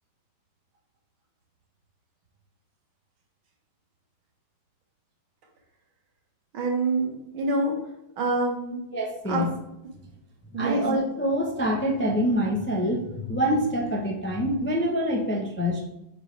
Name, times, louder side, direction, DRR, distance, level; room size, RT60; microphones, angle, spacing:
voice 1, 6.5-7.8 8.2-8.8 9.3-9.5 10.5-10.8, right 2 dB, 85° right, 1 dB, 2.3 m, -26 dB
voice 2, 8.9-9.5 10.5-15.8, equal, 15° left, 0 dB, 0.4 m, -25 dB
8.5 x 6.2 x 3.3 m, 0.88 s
omnidirectional pair, 2.2 m